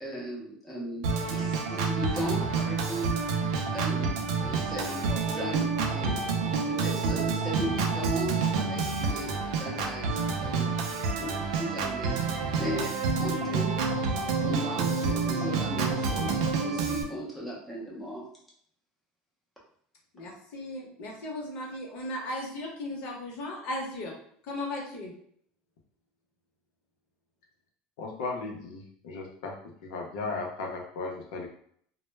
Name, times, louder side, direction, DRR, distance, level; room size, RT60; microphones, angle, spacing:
voice 1, 0.0-10.7 11.2-12.9 13.2-13.8 14.4-18.3, equal, ahead, -5 dB, 0.5 m, -37 dB
Organ, 1.0-17.0, right 4 dB, 85° right, 0.4 m, -28 dB
voice 2, 20.1-24.1 24.4-25.1, left 1 dB, 45° left, -2 dB, 0.8 m, -36 dB
voice 3, 28.0-29.5 29.8-31.5, left 3 dB, 90° left, 0 dB, 0.6 m, -36 dB
2.0 x 2.0 x 3.2 m, 0.63 s
cardioid pair, 170°, 3 cm